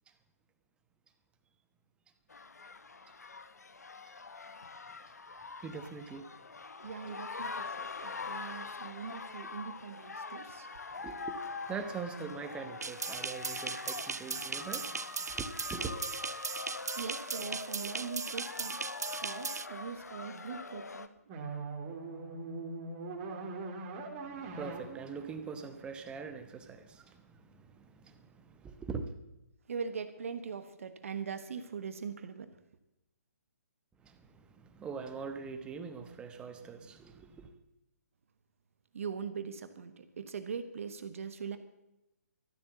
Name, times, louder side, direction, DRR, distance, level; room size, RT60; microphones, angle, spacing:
sound 1, 2.3-21.1, left 4 dB, 75° left, 1.0 m, -44 dB
voice 1, 5.6-6.2 10.9-11.4 11.7-16.0 24.3-29.1 34.0-37.5, right 5 dB, 10° right, 1.1 m, -43 dB
voice 2, 6.8-10.7 16.7-18.8 19.2-21.1 29.7-32.5 38.9-41.6, right 6 dB, 55° right, 1.2 m, -41 dB
sound 2, 12.8-19.7, right 5 dB, 75° right, 0.5 m, -38 dB
sound 3, 21.3-26.4, right 3 dB, 30° right, 2.8 m, -42 dB
13.0 x 12.0 x 6.9 m
figure-of-eight pair, 135°, 9 cm